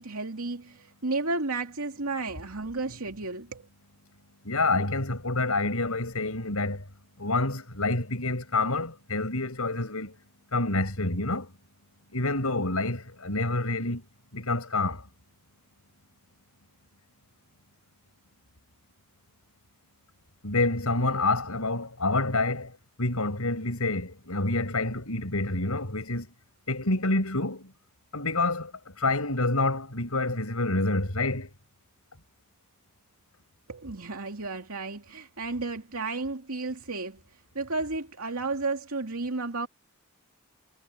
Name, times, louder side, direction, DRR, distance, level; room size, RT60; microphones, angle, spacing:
voice 1, 0.0-3.6 33.7-39.7, right 3 dB, 75° right, 2.7 m, -33 dB
voice 2, 4.4-6.8 7.2-10.2 10.5-11.5 12.1-14.1 14.3-15.1 20.4-26.3 26.7-27.7 28.1-28.7 29.0-31.5, left 2 dB, 85° left, 5.9 m, -28 dB
head